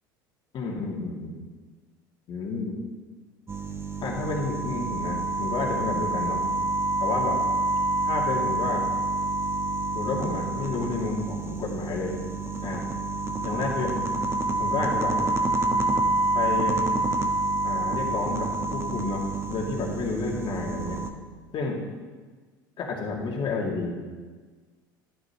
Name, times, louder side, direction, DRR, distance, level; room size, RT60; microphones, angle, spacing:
voice 1, 0.5-1.4 2.3-2.7 4.0-6.5 7.0-7.4 8.0-8.8 9.9-12.2 12.6-12.8 13.4-13.9 14.6-15.2 16.3-16.8 17.6-21.0 21.5-21.8 22.8-24.0, left 4 dB, 45° left, -1 dB, 2.5 m, -30 dB
sound 1, 3.5-21.1, right 2 dB, 25° right, 1.1 m, -27 dB
11.5 x 11.5 x 3.1 m, 1.4 s
hypercardioid pair, 70°, 11 cm